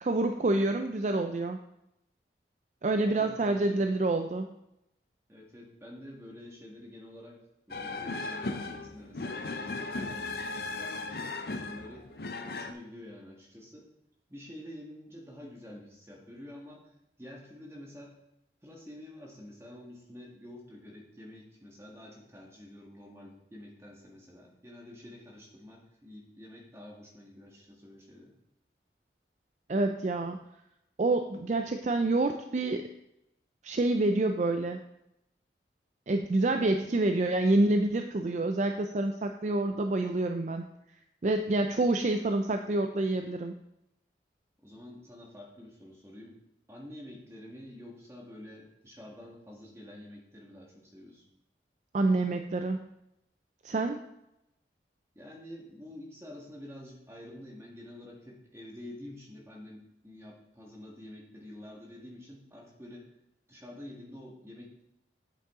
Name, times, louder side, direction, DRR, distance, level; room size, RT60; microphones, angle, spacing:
voice 1, 0.0-1.6 2.8-4.5 29.7-30.4 31.0-32.9 33.6-34.8 36.1-40.6 41.2-43.5 51.9-52.9 53.6-54.0, right 2 dB, 40° right, 6 dB, 0.4 m, -27 dB
voice 2, 2.9-3.8 5.3-7.4 7.7-11.3 11.6-12.1 12.5-13.9 14.3-16.9 17.2-18.2 18.6-28.3 44.6-46.4 46.7-51.2 55.1-63.1 63.5-64.8, left 1 dB, 15° right, -1 dB, 1.6 m, -48 dB
sound 1, 7.7-12.7, left 3 dB, 60° left, 0.6 m, -36 dB
8.5 x 7.3 x 3.7 m, 0.83 s
head